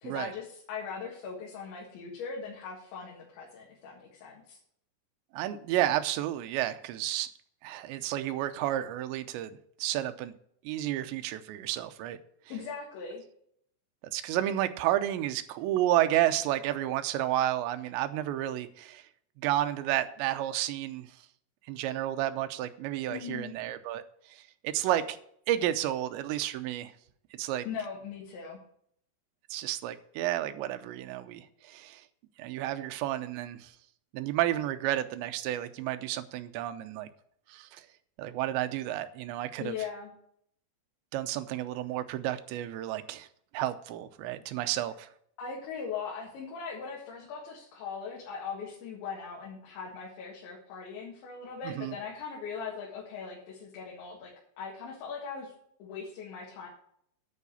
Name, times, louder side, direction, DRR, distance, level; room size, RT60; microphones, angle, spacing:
voice 1, 0.0-4.6 12.5-13.2 23.1-23.5 27.7-28.6 39.6-40.1 45.4-55.5 55.8-56.7, left 6 dB, 85° left, -4 dB, 4.3 m, -40 dB
voice 2, 5.3-7.3 7.6-10.3 10.6-12.2 14.1-19.0 19.4-21.1 21.7-24.0 24.3-25.2 25.5-26.9 27.4-27.7 29.5-32.0 32.4-33.7 34.1-37.1 37.5-37.9 38.2-39.8 41.1-43.3 43.5-45.1 51.6-52.0, right 13 dB, 85° right, 10 dB, 3.0 m, -31 dB
11.0 x 4.9 x 8.3 m, 0.67 s
omnidirectional pair, 5.1 m